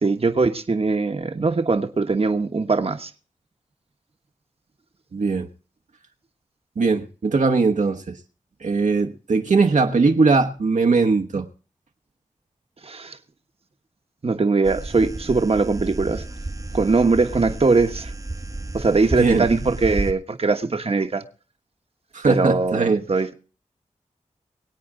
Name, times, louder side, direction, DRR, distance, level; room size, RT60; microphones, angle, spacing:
voice 1, 0.0-3.1 12.8-13.2 14.2-16.2 16.7-18.1 18.7-21.2 22.3-23.3, right 3 dB, 50° right, 1.2 m, -21 dB
voice 2, 5.1-5.5 6.8-8.2 8.6-11.5 19.2-19.5 22.1-23.0, right 4 dB, 75° right, 1.2 m, -20 dB
sound 1, 14.6-20.1, right 2 dB, 25° right, 0.9 m, -32 dB
24.0 x 8.6 x 3.8 m
cardioid pair, 40°, 13 cm